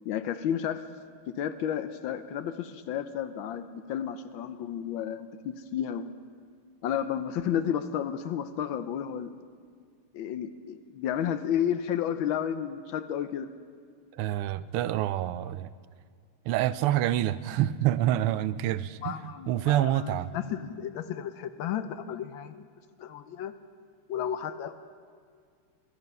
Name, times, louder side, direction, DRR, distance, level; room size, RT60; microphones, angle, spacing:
voice 1, 0.0-0.8 1.4-6.1 6.8-9.3 10.1-13.5 19.0-22.7 23.0-23.5 24.1-24.7, left 9 dB, 75° left, 11 dB, 1.3 m, -32 dB
voice 2, 14.1-15.7 16.5-20.3, right 12 dB, 85° right, 15 dB, 1.5 m, -27 dB
22.5 x 11.5 x 5.4 m, 2.1 s
omnidirectional pair, 2.4 m